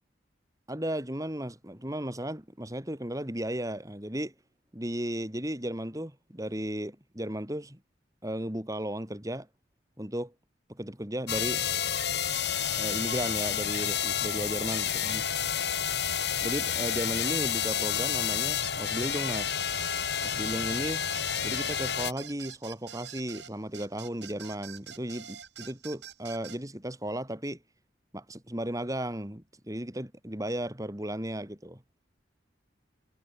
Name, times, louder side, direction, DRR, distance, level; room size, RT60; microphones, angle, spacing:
voice 1, 0.7-4.3 4.7-7.8 8.2-9.5 10.0-10.3 10.7-11.6 12.8-15.2 16.4-19.6 20.2-21.0 21.4-27.6 28.1-31.8, right 1 dB, 20° right, 3.2 m, -35 dB
sound 1, 11.3-22.1, left 8 dB, 65° left, 3.9 m, -30 dB
sound 2, 19.7-26.6, right 9 dB, 70° right, 4.5 m, -46 dB
head